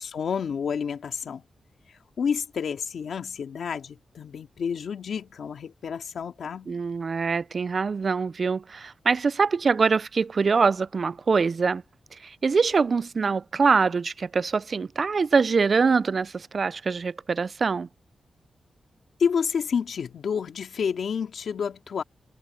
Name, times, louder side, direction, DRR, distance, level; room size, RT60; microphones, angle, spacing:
voice 1, 0.0-1.4 1.9-6.7 19.2-22.0, left 6 dB, 75° left, 2.2 m, -29 dB
voice 2, 6.7-11.8 12.2-17.9, right 5 dB, 45° right, 0.3 m, -24 dB
wide cardioid pair, 125°, 0 cm